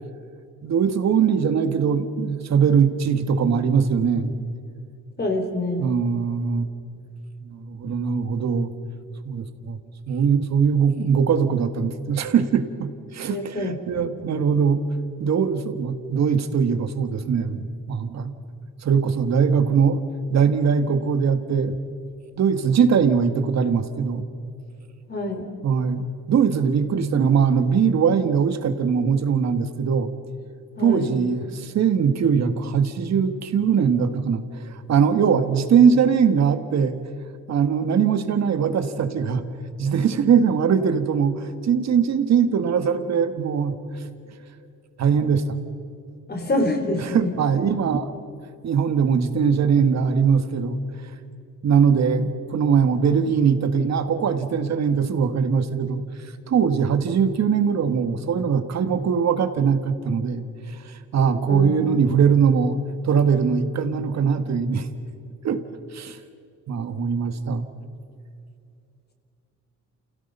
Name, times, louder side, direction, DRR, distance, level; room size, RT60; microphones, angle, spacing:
voice 1, 0.6-4.3 5.8-6.7 7.5-8.7 9.2-9.8 10.1-14.8 15.2-18.3 18.8-20.0 20.3-21.7 22.3-24.2 25.6-30.1 30.8-37.0 37.5-39.4 39.8-43.7 45.0-45.6 47.0-48.1 48.6-51.1 51.6-56.0 56.5-60.4 60.7-62.8 63.0-64.9 65.4-65.6 65.9-66.2 66.7-67.6, right 6 dB, 60° right, 9 dB, 1.8 m, -21 dB
voice 2, 5.2-6.0 13.3-14.1 25.1-25.5 30.8-31.1 46.3-47.3 61.4-61.8, left 2 dB, 35° left, 4 dB, 3.8 m, -26 dB
29.0 x 17.0 x 5.6 m, 2.5 s
cardioid pair, 90°, 30 cm